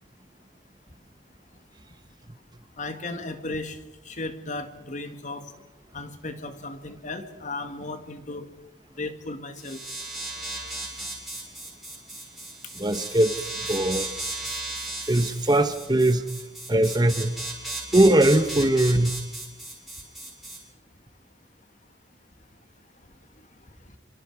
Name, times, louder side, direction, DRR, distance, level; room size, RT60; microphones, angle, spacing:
voice 1, 2.8-3.8 4.0-5.5 5.9-8.5 9.0-9.8, left 2 dB, 45° left, 7 dB, 2.1 m, -35 dB
sound 1, 9.6-20.6, right 2 dB, ahead, 6.8 m, -35 dB
voice 2, 12.7-14.1 15.1-16.2 16.7-17.3 17.9-19.3, right 1 dB, 25° right, 10 dB, 1.1 m, -21 dB
25.5 x 25.5 x 4.9 m, 0.97 s
head